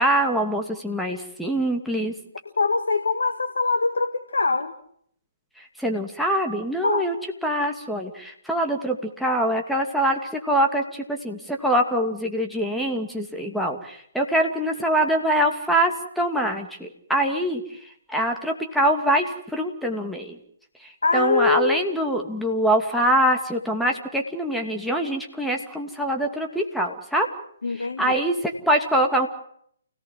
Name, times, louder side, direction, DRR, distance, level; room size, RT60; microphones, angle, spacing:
voice 1, 0.0-2.1 5.6-7.1 7.4-20.4 20.8-27.3 27.8-29.3, right 1 dB, ahead, 2 dB, 2.6 m, -24 dB
voice 2, 2.6-4.7 6.8-7.1 21.0-21.8 27.6-28.1, left 4 dB, 70° left, 8 dB, 1.8 m, -23 dB
29.5 x 18.0 x 7.6 m, 0.68 s
figure-of-eight pair, 135°, 0 cm